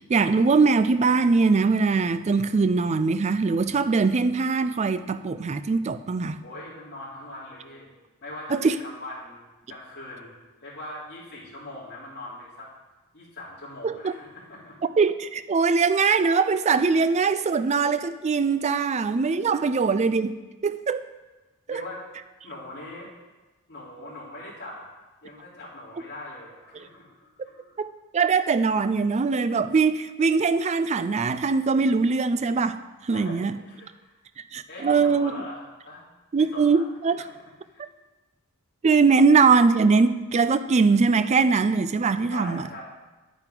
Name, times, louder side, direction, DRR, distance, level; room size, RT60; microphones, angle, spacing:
voice 1, 0.0-6.4 8.5-8.8 13.8-14.1 15.0-20.3 20.6-21.0 21.7-21.8 27.8-32.8 33.1-33.6 34.5-35.3 36.3-37.2 38.8-42.6, right 4 dB, 30° right, 12 dB, 0.3 m, -22 dB
voice 2, 6.4-7.9 8.2-10.3 10.6-12.7 13.1-14.8 19.6-19.7 21.7-22.0 22.4-23.1 23.7-24.9 25.2-27.8 33.1-34.2 34.7-36.1 36.4-36.8 37.2-37.3 37.6-37.8 42.3-42.8, left 1 dB, 50° left, -7 dB, 3.5 m, -41 dB
9.6 x 9.0 x 3.8 m, 1.2 s
head